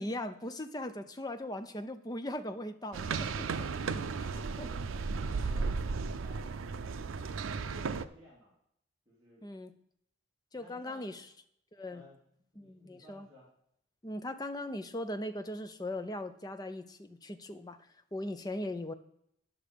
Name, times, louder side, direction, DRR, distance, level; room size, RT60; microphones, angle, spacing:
voice 1, 0.0-3.7 4.2-4.7 9.4-9.7 10.5-11.2 11.7-12.0 12.6-13.3 14.0-17.8 18.1-18.9, left 1 dB, 20° left, 9 dB, 0.5 m, -39 dB
sound 1, 2.9-8.0, right 4 dB, 90° right, 0.5 m, -35 dB
voice 2, 3.7-4.9 5.2-5.7 6.2-8.5 9.1-9.4 10.5-11.1 11.9-12.2 12.5-13.5, left 1 dB, 20° right, -8 dB, 2.7 m, -57 dB
10.5 x 6.0 x 5.1 m, 0.72 s
head